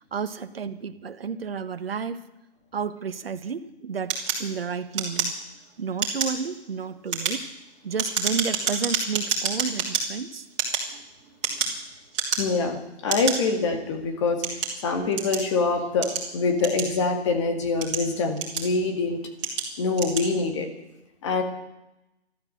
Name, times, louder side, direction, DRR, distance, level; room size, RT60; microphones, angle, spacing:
voice 1, 0.0-2.2 2.7-5.4 5.8-7.5 7.8-10.4, right 6 dB, 60° right, 9 dB, 1.4 m, -31 dB
sound 1, 4.1-5.6 5.9-6.4 6.9-10.0 10.5-11.8 12.1-12.6 13.1-13.4 14.0-15.5 16.0-17.2 17.7-18.9 19.4-19.7 19.9-20.3, right 6 dB, 25° right, 3.7 m, -28 dB
voice 2, 12.4-19.2 19.8-20.7 21.2-21.4, left 4 dB, 25° left, 4 dB, 2.1 m, -25 dB
14.0 x 12.5 x 7.8 m, 0.92 s
hypercardioid pair, 160°, 33 cm